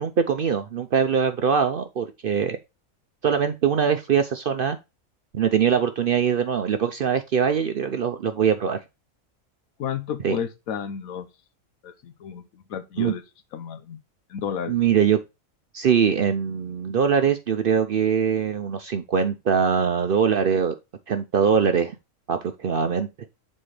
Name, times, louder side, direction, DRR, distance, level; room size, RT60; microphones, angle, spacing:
voice 1, 0.0-2.6 3.2-4.8 5.3-8.8 10.2-10.4 13.0-13.2 14.7-15.2 15.7-20.7 21.1-22.0 22.3-23.1, right 7 dB, 55° right, 0.6 m, -22 dB
voice 2, 9.8-11.3 11.8-13.2 13.5-14.0 14.3-14.7, left 8 dB, 85° left, 1.2 m, -32 dB
7.7 x 4.3 x 3.2 m
omnidirectional pair, 1.4 m